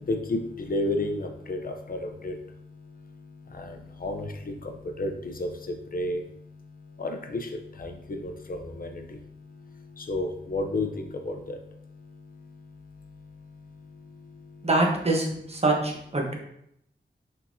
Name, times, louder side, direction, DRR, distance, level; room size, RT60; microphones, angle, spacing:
voice 1, 0.0-14.7, left 2 dB, 50° left, 4 dB, 0.6 m, -34 dB
voice 2, 14.6-16.3, right 2 dB, 35° right, 0 dB, 1.0 m, -24 dB
5.5 x 3.6 x 2.7 m, 0.75 s
wide cardioid pair, 90°, 19 cm